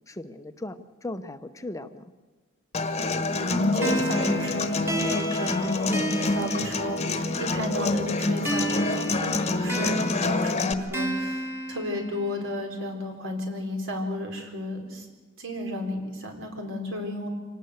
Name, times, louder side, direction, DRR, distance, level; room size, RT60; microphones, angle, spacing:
voice 1, 0.1-2.0, left 2 dB, 15° left, 9 dB, 0.8 m, -37 dB
Human voice / Acoustic guitar, 2.7-10.7, left 2 dB, 30° left, 1.2 m, -27 dB
voice 2, 3.4-15.1 15.4-17.3, left 1 dB, 70° right, 3 dB, 4.3 m, -32 dB
sound 1, 3.8-7.4 8.5-12.5, right 1 dB, 10° right, 1.7 m, -33 dB
26.0 x 18.5 x 8.0 m, 1.3 s
head